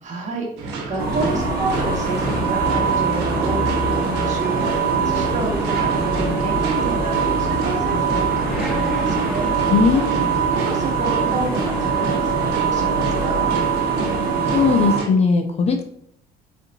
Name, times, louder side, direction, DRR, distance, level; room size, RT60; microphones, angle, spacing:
voice 1, 0.0-9.5 10.5-13.5, right 3 dB, 45° right, 0 dB, 1.3 m, -29 dB
sound 1, 0.6-15.1, right 3 dB, 90° right, 1.0 m, -31 dB
Motorcycle / Accelerating revving vroom, 0.7-14.5, left 2 dB, ahead, 1.2 m, -33 dB
sound 2, 1.0-15.0, right 5 dB, 65° right, 1.0 m, -22 dB
voice 2, 9.7-10.2 14.5-15.8, left 5 dB, 40° left, 6 dB, 0.6 m, -18 dB
4.3 x 3.9 x 2.7 m, 0.68 s
cardioid pair, 110°, 17 cm